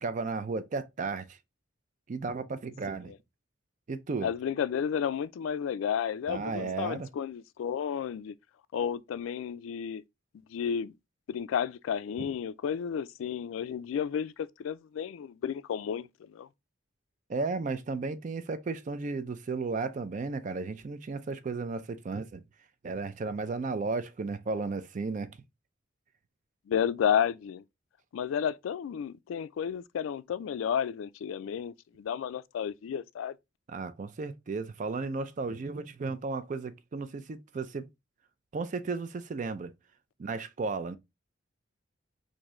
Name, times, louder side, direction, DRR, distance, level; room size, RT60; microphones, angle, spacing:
voice 1, 0.0-1.4 2.1-3.1 3.9-4.3 6.3-7.1 12.2-12.3 17.3-22.4 22.8-25.3 33.7-37.9 38.5-39.7 40.2-41.0, right 4 dB, 40° right, 0.4 m, -34 dB
voice 2, 4.2-8.4 8.7-10.0 10.5-10.9 11.3-16.5 26.7-27.6 28.1-33.3, left 8 dB, 90° left, 0.3 m, -32 dB
3.6 x 2.6 x 3.0 m
head